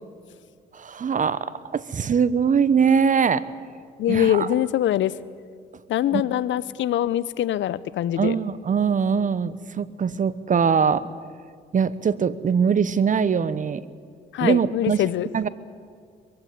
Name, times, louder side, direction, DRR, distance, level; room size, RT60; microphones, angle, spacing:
voice 1, 0.8-3.4 4.1-4.5 6.1-6.2 8.2-11.1 11.7-13.9 14.4-15.1 15.3-15.5, right 6 dB, 40° right, 17 dB, 0.9 m, -22 dB
voice 2, 4.0-5.1 5.9-8.4 14.3-15.3, left 12 dB, 70° left, 18 dB, 0.7 m, -23 dB
22.5 x 15.5 x 10.0 m, 2.1 s
cardioid pair, 90°, 20 cm